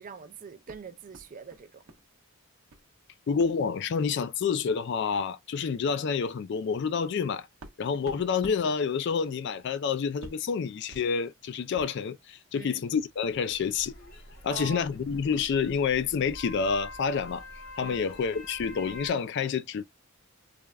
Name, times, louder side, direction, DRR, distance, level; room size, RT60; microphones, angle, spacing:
voice 1, 0.0-1.8 5.5-5.6 8.1-8.2 12.5-12.8 14.5-14.9 17.8-18.0, right 5 dB, 35° right, 0.4 m, -43 dB
sound 1, 0.7-2.1 2.3-2.9 3.4-3.6 4.0-4.2 5.1-5.2 5.5-5.7 6.2-12.1, right 2 dB, 70° right, 0.7 m, -51 dB
voice 2, 3.3-7.5 7.8-14.0 14.4-17.4 17.8-19.8, left 6 dB, 50° left, 0.3 m, -28 dB
sound 2, 13.1-19.1, left 1 dB, 70° left, 1.0 m, -46 dB
3.3 x 2.1 x 2.3 m
head